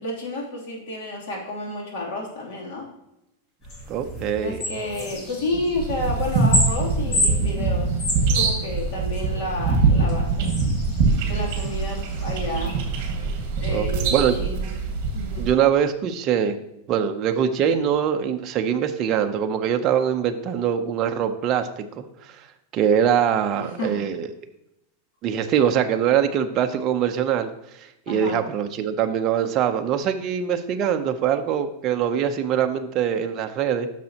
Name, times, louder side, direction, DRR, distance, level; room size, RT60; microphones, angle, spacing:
voice 1, 0.0-2.9 4.1-10.5 11.2-12.8 13.6-14.8 15.1-15.5 23.6-24.0 28.1-28.4, left 2 dB, 65° left, -1 dB, 2.8 m, -31 dB
sound 1, 3.6-12.7, equal, 30° left, 1.7 m, -31 dB
voice 2, 3.9-4.6 13.7-14.4 15.4-22.0 22.4-22.5 22.7-24.3 25.2-27.5 27.8-33.9, right 8 dB, 30° right, 5 dB, 0.6 m, -23 dB
sound 2, 5.7-15.5, right 4 dB, 45° right, 1.6 m, -23 dB
10.0 x 6.4 x 2.9 m, 0.86 s
supercardioid pair, 170°, 0 cm